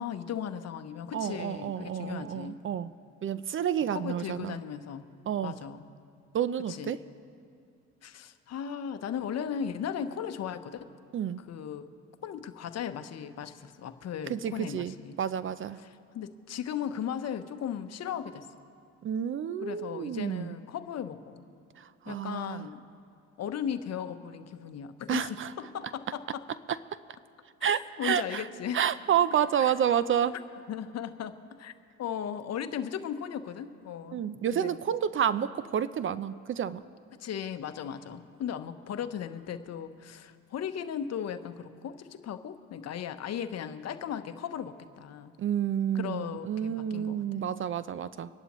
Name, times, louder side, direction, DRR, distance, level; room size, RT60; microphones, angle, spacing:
voice 1, 0.0-2.6 3.9-5.1 5.4-5.8 6.7-6.9 8.0-10.9 11.5-11.9 12.2-15.2 15.8-18.5 19.6-21.4 22.1-22.8 23.4-26.4 27.6-28.8 29.6-29.7 30.7-31.7 32.0-34.2 34.5-34.8 37.2-45.3 45.9-47.2, left 8 dB, 50° left, 10 dB, 0.9 m, -37 dB
voice 2, 1.1-2.9 3.2-4.6 5.3-5.6 6.3-7.0 11.1-11.4 14.3-15.8 19.0-20.5 21.8-22.7 25.1-25.5 27.6-28.5 28.7-30.3 34.1-36.8 45.4-48.3, right 9 dB, 40° right, 16 dB, 0.5 m, -30 dB
25.5 x 11.0 x 3.1 m, 2.4 s
supercardioid pair, 75°, 32 cm